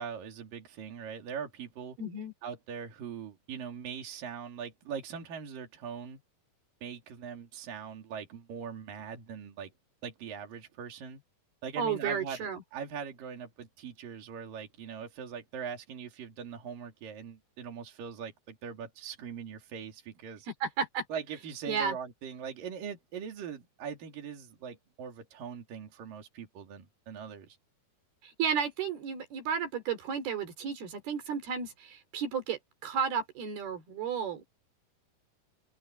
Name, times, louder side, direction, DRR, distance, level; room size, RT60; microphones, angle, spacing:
voice 1, 0.0-2.0 2.4-6.2 6.8-9.7 10.0-11.2 11.6-20.5 21.1-27.6, right 7 dB, 65° right, 4.5 m, -41 dB
voice 2, 2.0-2.3 11.8-12.6 20.6-21.1 21.7-22.0 28.2-34.4, right 6 dB, 90° right, 5.4 m, -33 dB
omnidirectional pair, 4.3 m